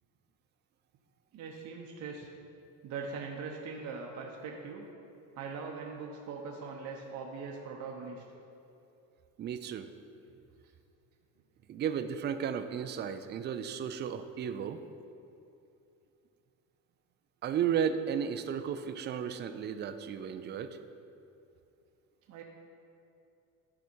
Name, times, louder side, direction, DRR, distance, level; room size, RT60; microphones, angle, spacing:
voice 1, 1.3-2.3 2.8-4.9 5.3-8.2 22.3-22.4, right 4 dB, 55° right, -1 dB, 0.8 m, -41 dB
voice 2, 9.4-9.9 11.7-14.8 17.4-20.8, right 8 dB, 30° right, 9 dB, 0.4 m, -34 dB
11.0 x 4.9 x 4.4 m, 2.7 s
cardioid pair, 135°, 35 cm